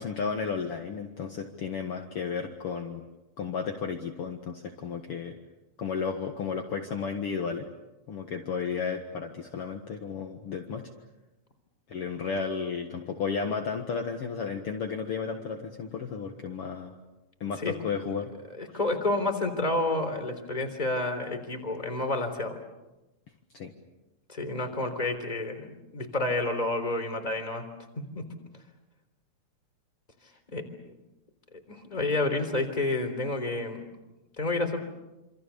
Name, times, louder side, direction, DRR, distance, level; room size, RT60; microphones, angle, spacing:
voice 1, 0.0-3.0 3.4-5.3 5.8-7.7 8.1-10.8 11.9-16.9 17.4-18.3 23.5-23.7, left 5 dB, 55° left, 3 dB, 2.3 m, -33 dB
voice 2, 18.6-22.6 24.3-27.6 28.0-28.2 30.5-30.6 31.5-33.8 34.4-34.8, left 2 dB, 15° left, 6 dB, 3.4 m, -29 dB
28.0 x 27.0 x 7.0 m, 1.0 s
omnidirectional pair, 3.4 m